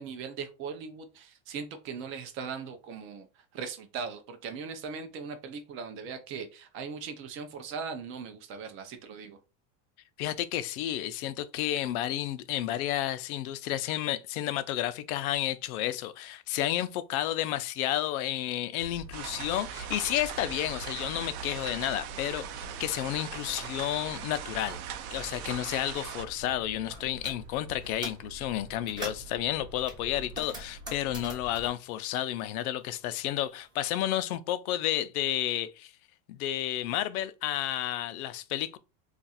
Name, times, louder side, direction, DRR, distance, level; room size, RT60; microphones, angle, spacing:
voice 1, 0.0-9.4, right 5 dB, 30° right, 0.4 m, -39 dB
voice 2, 10.2-24.8 25.1-35.9 36.3-38.8, left 13 dB, 80° left, 0.6 m, -31 dB
sound 1, 18.8-31.7, right 2 dB, 50° right, 0.8 m, -46 dB
sound 2, 19.1-26.3, right 10 dB, 80° right, 0.6 m, -40 dB
sound 3, 26.9-27.4 27.8-28.3 28.7-29.3 29.9-32.8 33.1-34.2, right 1 dB, 10° right, 0.9 m, -44 dB
2.5 x 2.4 x 4.0 m
supercardioid pair, 160°, 43 cm